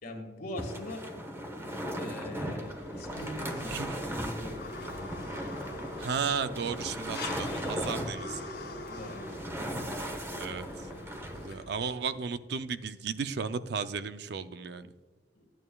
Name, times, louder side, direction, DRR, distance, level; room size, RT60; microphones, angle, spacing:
voice 1, 0.0-1.1 1.7-4.6 8.8-9.4 10.4-11.2 15.3-15.4, left 1 dB, 55° left, 2 dB, 1.8 m, -43 dB
sound 1, 0.6-11.5, equal, 15° right, 1.0 m, -38 dB
sound 2, 2.6-11.8, left 2 dB, 75° left, 2.0 m, -44 dB
voice 2, 6.0-8.5 10.3-10.9 11.4-14.9, right 5 dB, 70° right, 11 dB, 0.5 m, -34 dB
12.5 x 9.0 x 2.3 m, 1.4 s
head